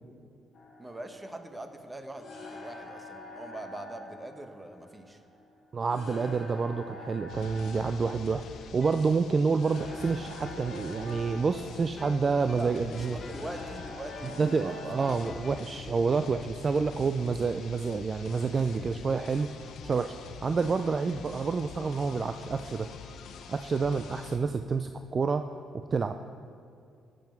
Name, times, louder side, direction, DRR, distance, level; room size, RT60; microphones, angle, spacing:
sound 1, 0.5-15.8, left 2 dB, 50° left, 2.0 m, -47 dB
voice 1, 0.8-5.2 12.6-15.5, right 1 dB, 15° right, 6 dB, 1.0 m, -42 dB
voice 2, 5.7-8.4 8.7-13.2 14.4-19.5 19.8-20.1 20.4-22.9 23.5-25.5 25.9-26.2, right 4 dB, 40° right, 8 dB, 0.3 m, -28 dB
sound 2, 7.3-24.4, left 6 dB, 75° left, 0.7 m, -46 dB
sound 3, 7.8-9.6 10.0-15.8, left 3 dB, 35° left, 0.8 m, -47 dB
13.0 x 7.7 x 4.5 m, 2.3 s
cardioid pair, 90°, 0 cm